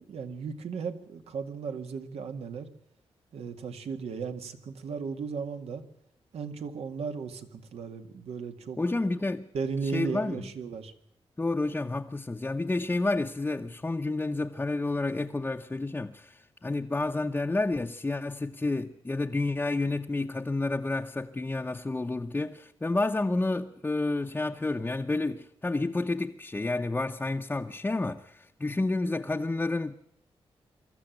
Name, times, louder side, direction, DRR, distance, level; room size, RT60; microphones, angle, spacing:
voice 1, 0.0-2.7 3.3-5.8 6.3-8.8 9.5-10.9, right 5 dB, 80° right, 1.9 m, -35 dB
voice 2, 8.8-9.5 9.9-10.5 11.4-30.0, left 2 dB, 15° left, 0.8 m, -30 dB
24.5 x 14.0 x 9.2 m
wide cardioid pair, 130°, 10 cm